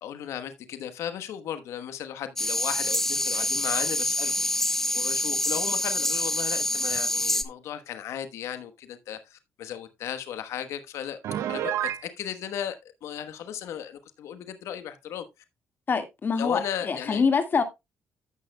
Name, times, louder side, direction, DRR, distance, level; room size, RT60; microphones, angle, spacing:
voice 1, 0.0-4.4 4.9-11.2 11.5-11.7 12.0-15.2 16.4-17.2, left 9 dB, 75° left, 1.1 m, -35 dB
sound 1, 2.4-7.4, left 1 dB, 10° left, 1.1 m, -26 dB
Piano, 11.2-12.1, right 11 dB, 75° right, 0.7 m, -29 dB
voice 2, 15.9-17.6, left 5 dB, 45° left, 1.9 m, -25 dB
15.0 x 6.4 x 2.2 m
cardioid pair, 75°, 5 cm